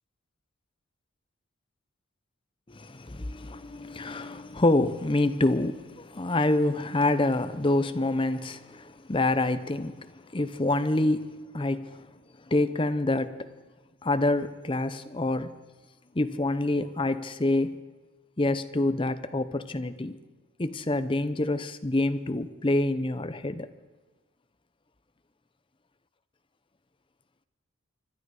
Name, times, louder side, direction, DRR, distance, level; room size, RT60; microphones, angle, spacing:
voice 1, 2.7-12.0 12.5-13.5 14.0-15.6 16.1-17.8 18.4-20.2 20.6-23.7, left 2 dB, 25° left, 0.7 m, -27 dB
26.0 x 11.5 x 4.9 m
head